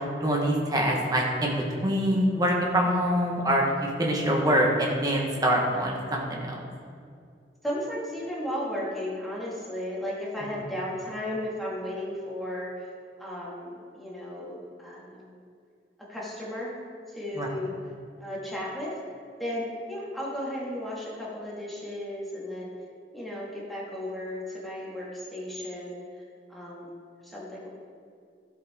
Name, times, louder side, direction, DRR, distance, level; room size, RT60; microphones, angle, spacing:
voice 1, 0.2-6.6 17.4-17.5, equal, 20° right, -1 dB, 1.5 m, -25 dB
voice 2, 7.6-12.9 13.2-15.4 16.1-16.8 17.1-17.7 18.2-19.0 19.4-22.7 23.1-26.0 26.5-27.7, left 1 dB, ahead, -6 dB, 2.3 m, -35 dB
13.0 x 8.0 x 3.8 m, 2.3 s
head